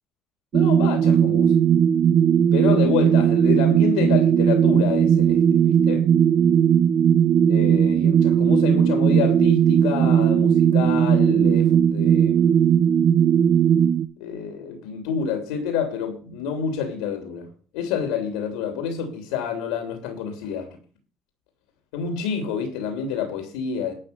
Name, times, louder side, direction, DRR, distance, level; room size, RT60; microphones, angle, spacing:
voice 1, 0.5-1.5 2.5-6.1 7.5-12.6 14.2-17.5 17.7-20.8 21.9-23.9, left 7 dB, 85° left, 3.1 m, -28 dB
sound 1, 0.5-14.1, right 8 dB, 55° right, 0.9 m, -18 dB
12.0 x 7.1 x 6.9 m
supercardioid pair, 70°, 0 cm